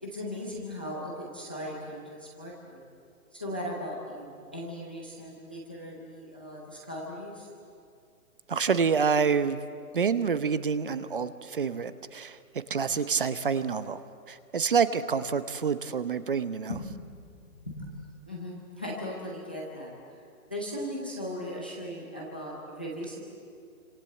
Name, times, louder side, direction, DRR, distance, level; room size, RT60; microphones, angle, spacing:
voice 1, 0.0-2.8 3.3-7.5 16.7-17.9 18.3-19.9 20.5-23.2, equal, 5° left, -3 dB, 0.6 m, -38 dB
voice 2, 8.5-9.6 9.9-12.4 12.7-14.0 14.3-16.7, right 6 dB, 35° right, 12 dB, 0.9 m, -27 dB
28.5 x 26.0 x 7.7 m, 2.3 s
hypercardioid pair, 170°, 45 cm